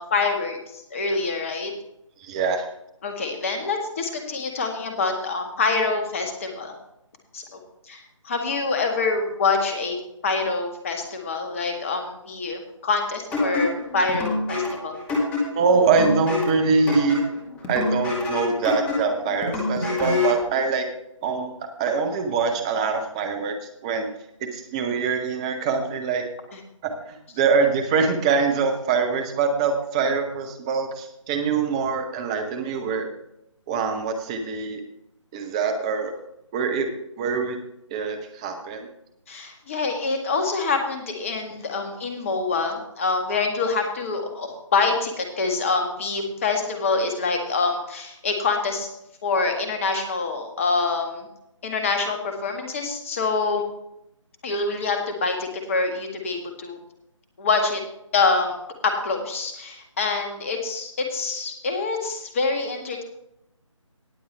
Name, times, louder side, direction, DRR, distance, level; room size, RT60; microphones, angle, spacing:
voice 1, 0.0-1.7 3.0-6.7 7.3-7.6 7.9-10.0 10.2-15.0 39.3-48.9 49.2-51.3 51.6-53.6 54.4-56.8 57.4-57.8 58.1-58.6 59.0-63.0, left 4 dB, 25° left, 4 dB, 1.9 m, -26 dB
voice 2, 2.2-2.7 15.5-17.2 17.7-20.9 21.2-24.1 24.4-26.2 26.8-33.1 33.7-34.8 35.3-36.1 36.5-36.9 37.2-37.6 37.9-38.9, right 5 dB, 10° right, 6 dB, 0.9 m, -24 dB
sound 1, 13.3-20.4, left 2 dB, 10° left, 1.9 m, -26 dB
19.0 x 7.3 x 3.4 m, 0.82 s
figure-of-eight pair, 155°, 17 cm